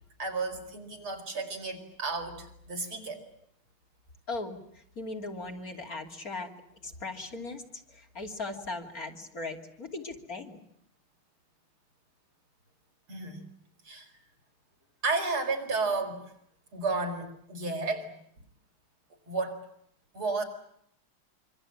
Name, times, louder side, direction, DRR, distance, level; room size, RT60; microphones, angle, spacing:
voice 1, 0.2-3.2 13.1-13.4 13.9-14.1 15.0-16.2 16.7-18.1 19.3-19.6 20.1-20.4, right 3 dB, 85° right, 4 dB, 5.5 m, -32 dB
voice 2, 4.3-4.6 5.0-7.6 7.9-10.6, left 3 dB, 40° left, 3 dB, 3.3 m, -38 dB
26.0 x 25.5 x 8.8 m, 0.73 s
omnidirectional pair, 2.3 m